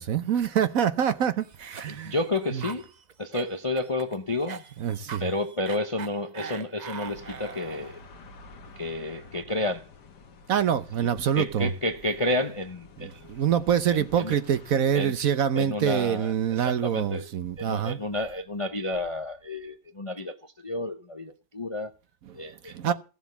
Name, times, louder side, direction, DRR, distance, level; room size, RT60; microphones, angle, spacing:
voice 1, 0.0-2.1 2.5-2.6 4.8-5.2 10.5-11.7 13.0-18.0 22.6-22.9, right 9 dB, 60° right, 1.1 m, -25 dB
Cough, 1.4-8.0, right 6 dB, 85° right, 0.3 m, -42 dB
voice 2, 1.9-2.9 3.2-4.6 5.2-8.0 8.8-9.9 11.0-11.1 11.4-13.4 13.9-14.4 14.9-15.1 15.5-17.3 17.6-21.9 22.3-22.9, left 2 dB, 35° left, 0.5 m, -31 dB
sound 1, 7.1-14.8, left 4 dB, 75° left, 2.0 m, -50 dB
15.0 x 7.2 x 7.0 m
omnidirectional pair, 1.8 m